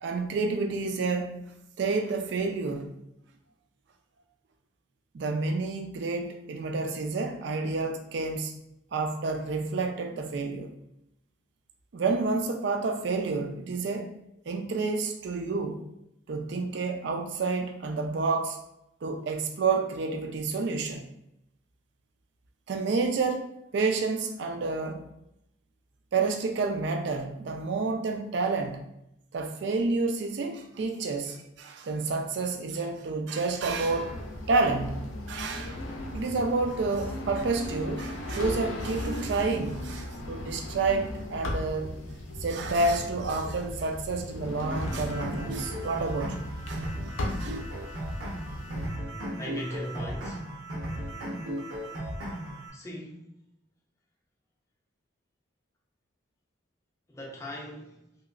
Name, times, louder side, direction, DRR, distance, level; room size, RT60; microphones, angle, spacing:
voice 1, 0.0-1.5 1.8-2.9 5.1-8.5 8.9-10.7 11.9-14.2 14.5-15.8 16.3-18.6 19.0-21.1 22.7-23.5 23.7-25.0 26.1-28.8 29.3-34.2 34.5-35.0 35.3-35.8 36.1-41.9 42.4-46.9 47.3-47.6, right 3 dB, 60° right, 0.4 m, -29 dB
sound 1, 33.6-48.9, left 1 dB, 80° left, 0.5 m, -37 dB
sound 2, 44.7-52.7, equal, 85° right, 0.9 m, -36 dB
voice 2, 49.4-50.5 52.7-53.4 57.1-58.2, equal, 15° left, 0.5 m, -39 dB
3.0 x 2.9 x 2.4 m
head